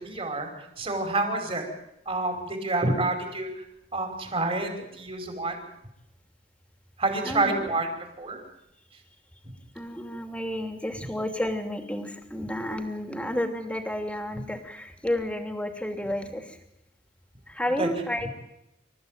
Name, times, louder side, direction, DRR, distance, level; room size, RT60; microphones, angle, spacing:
voice 1, 0.0-0.5 0.8-1.6 2.1-3.5 3.9-5.5 7.0-7.9 8.2-8.4 17.8-17.9 18.2-18.3, right 2 dB, 30° right, 4 dB, 5.3 m, -28 dB
voice 2, 7.2-7.7 9.7-16.6 17.5-18.3, left 1 dB, 5° left, 6 dB, 2.8 m, -31 dB
28.0 x 15.0 x 9.2 m, 0.84 s
head